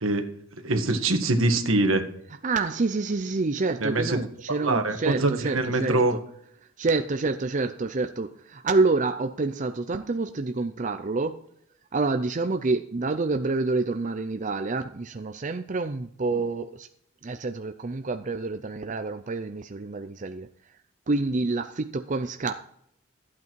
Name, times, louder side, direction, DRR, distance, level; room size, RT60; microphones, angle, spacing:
voice 1, 0.6-2.1 3.8-4.2 4.6-6.1, right 2 dB, 80° right, 6 dB, 1.6 m, -24 dB
voice 2, 2.4-6.0 6.8-11.4 11.9-16.9 17.2-20.5 21.1-22.5, right 3 dB, 40° right, 8 dB, 0.5 m, -27 dB
14.5 x 8.4 x 4.6 m, 0.71 s
head